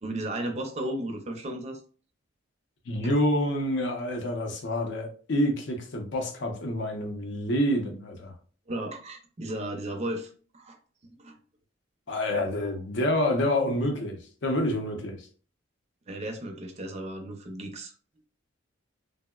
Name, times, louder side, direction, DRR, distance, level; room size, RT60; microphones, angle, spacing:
voice 1, 0.0-1.8 8.7-10.8 11.2-11.4 16.1-17.9, right 1 dB, 30° right, 4 dB, 0.4 m, -34 dB
voice 2, 2.9-8.3 12.1-15.3, left 1 dB, 60° left, 4 dB, 0.6 m, -27 dB
3.5 x 2.0 x 2.2 m, 0.41 s
head